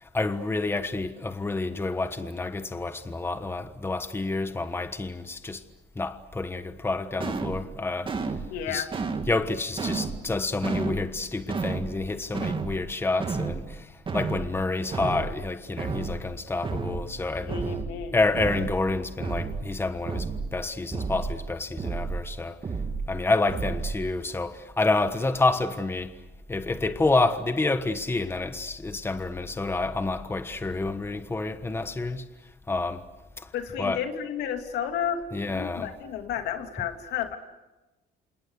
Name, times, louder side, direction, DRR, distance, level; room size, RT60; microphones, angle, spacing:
voice 1, 0.1-5.6 5.9-8.2 8.7-8.9 9.3-17.6 18.1-22.6 23.1-26.1 26.5-32.3 32.7-33.1 33.4-33.5 33.8-34.0 35.3-35.9 36.8-36.9, left 3 dB, 15° left, 1.3 m, -28 dB
sound 1, 7.2-7.6 8.1-8.5 8.9-9.3 9.8-10.2 10.6-11.1 11.5-11.9 12.3-12.8 13.2-13.6 14.1-14.5 14.9-15.3 15.8-16.2 16.6-17.1 17.5-17.9 18.3-18.8 19.2-19.6 20.1-20.5 20.9-21.4 21.8-22.2 22.6-23.1 23.5-24.0, right 4 dB, 30° right, 2.5 m, -31 dB
voice 2, 8.5-8.9 17.5-18.2 33.5-37.4, left 8 dB, 80° left, 2.9 m, -32 dB
29.0 x 27.5 x 6.6 m
cardioid pair, 110°, 17 cm